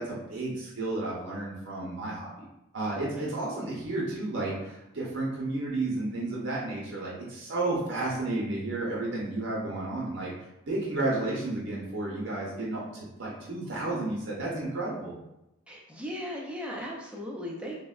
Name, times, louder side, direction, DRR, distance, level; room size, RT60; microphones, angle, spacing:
voice 1, 0.0-2.5 2.7-10.3 10.7-15.1, right 2 dB, 60° right, -4 dB, 0.5 m, -32 dB
voice 2, 15.7-17.8, equal, 5° right, -3 dB, 0.3 m, -37 dB
3.4 x 2.1 x 2.3 m, 0.89 s
head